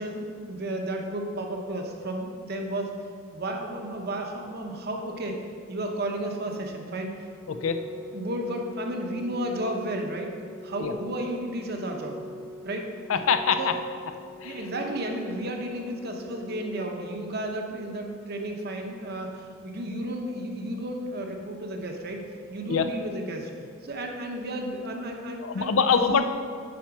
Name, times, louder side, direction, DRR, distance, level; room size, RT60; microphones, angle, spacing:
voice 1, 0.0-2.9 3.3-5.4 5.7-7.1 8.1-10.3 10.6-12.2 12.6-12.9 13.6-13.7 14.4-22.2 22.5-23.5 23.8-26.0, right 1 dB, 45° right, 2 dB, 0.9 m, -33 dB
Organ, 6.9-17.9, left 1 dB, ahead, 0.6 m, -44 dB
voice 2, 7.5-7.8 10.8-10.9 13.1-13.7 14.4-14.7 22.7-22.8 25.4-26.3, left 6 dB, 65° left, 9 dB, 0.5 m, -24 dB
8.7 x 4.5 x 5.9 m, 2.1 s
head